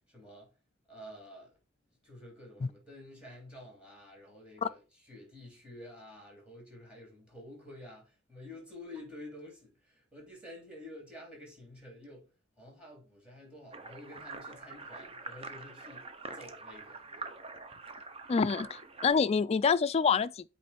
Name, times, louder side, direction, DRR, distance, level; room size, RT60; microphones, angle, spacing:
voice 1, 0.1-0.5 0.9-1.6 2.0-4.8 5.1-12.3 12.6-16.1 16.3-17.0, left 1 dB, 5° right, 3.1 m, -50 dB
sound 1, 13.7-19.1, right 3 dB, 30° right, 0.7 m, -45 dB
voice 2, 18.3-20.5, left 5 dB, 30° left, 0.3 m, -27 dB
8.4 x 3.1 x 4.3 m
head